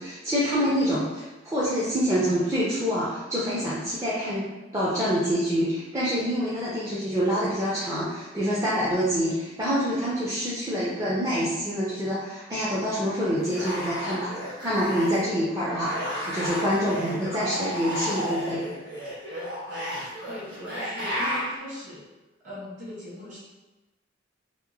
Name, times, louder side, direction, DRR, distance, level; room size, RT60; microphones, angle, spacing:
voice 1, 0.0-18.6, equal, 15° right, -9 dB, 0.4 m, -26 dB
sound 1, 13.4-15.3 15.6-21.5, equal, 60° right, 1.3 m, -32 dB
voice 2, 20.3-22.0 22.4-23.4, left 1 dB, 40° right, -8 dB, 1.2 m, -40 dB
2.8 x 2.5 x 2.7 m, 1.1 s
head